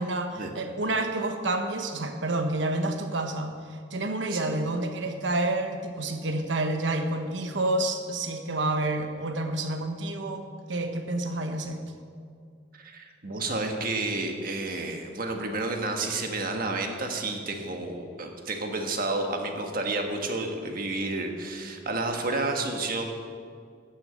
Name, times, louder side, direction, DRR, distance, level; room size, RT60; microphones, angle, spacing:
voice 1, 0.0-11.8, right 2 dB, 75° right, 5 dB, 1.2 m, -29 dB
voice 2, 12.7-23.1, right 2 dB, 50° right, 3 dB, 1.5 m, -30 dB
12.0 x 6.8 x 8.4 m, 2.2 s
head